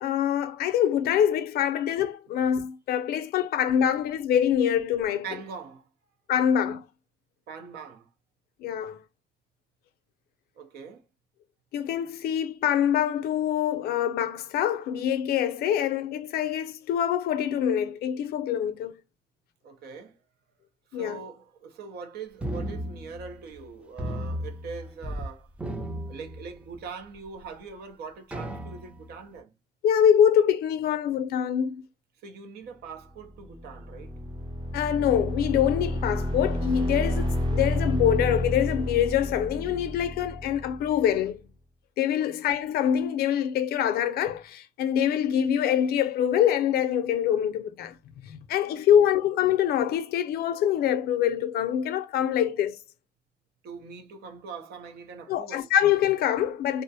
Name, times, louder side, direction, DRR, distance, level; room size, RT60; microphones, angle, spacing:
voice 1, 0.0-5.3 6.3-6.8 8.6-9.0 11.7-18.9 20.9-21.2 29.8-31.8 34.7-41.4 42.0-47.9 48.2-52.8 55.3-56.8, left 9 dB, 65° left, 0.5 m, -25 dB
voice 2, 5.2-5.9 7.5-8.1 10.6-11.0 19.6-20.2 20.9-25.5 26.1-29.5 32.2-34.2 42.2-42.3 48.7-48.8 53.6-55.7, right 5 dB, 70° right, 0.7 m, -42 dB
sound 1, 22.4-23.6 24.0-25.3 25.5-26.9 27.4-27.5 28.3-29.1, right 1 dB, 5° right, 0.4 m, -35 dB
sound 2, 33.4-41.1, left 1 dB, 25° right, 0.8 m, -30 dB
2.4 x 2.0 x 2.7 m
cardioid pair, 110°, 17 cm